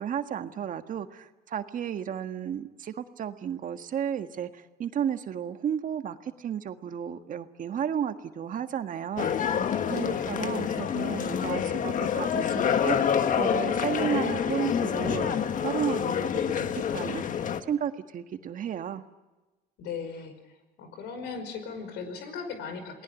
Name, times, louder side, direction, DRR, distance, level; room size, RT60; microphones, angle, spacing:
voice 1, 0.0-9.6 9.9-15.3 15.6-19.0, right 8 dB, 50° right, 8 dB, 1.7 m, -33 dB
sound 1, 9.2-17.6, left 8 dB, 50° left, 1.6 m, -27 dB
voice 2, 9.9-10.3 19.8-20.4 20.8-23.0, left 5 dB, 85° left, 8 dB, 5.4 m, -37 dB
29.0 x 19.5 x 8.3 m, 1.2 s
cardioid pair, 110°, 17 cm